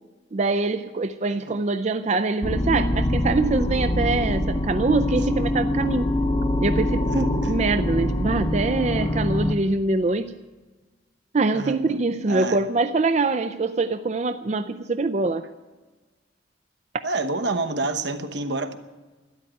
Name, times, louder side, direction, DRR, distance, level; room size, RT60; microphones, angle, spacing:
voice 1, 0.3-6.1 6.6-10.3 11.3-15.4, right 3 dB, 40° right, 10 dB, 0.4 m, -24 dB
voice 2, 1.3-1.6 7.0-7.5 11.5-12.6 17.0-18.8, right 3 dB, 70° right, 8 dB, 1.0 m, -29 dB
sound 1, 2.4-9.5, left 1 dB, 25° left, 0.7 m, -24 dB
13.0 x 11.5 x 9.2 m, 1.3 s
head